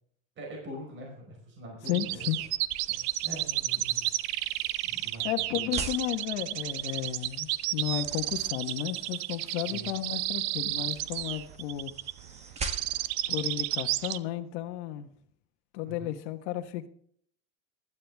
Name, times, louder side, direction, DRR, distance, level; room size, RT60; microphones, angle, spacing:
voice 1, 0.4-2.2 2.9-4.1 4.8-5.7 9.6-9.9 15.8-16.1, equal, 35° right, 0 dB, 4.8 m, -44 dB
voice 2, 1.9-2.4 5.2-11.9 13.3-15.1 15.7-16.9, left 13 dB, 80° left, 6 dB, 1.4 m, -33 dB
sound 1, 1.9-14.2, right 17 dB, 75° right, 0.8 m, -32 dB
sound 2, 2.0-13.2, right 3 dB, 20° right, 1.7 m, -45 dB
15.5 x 12.5 x 3.5 m, 0.62 s
cardioid pair, 140°, 34 cm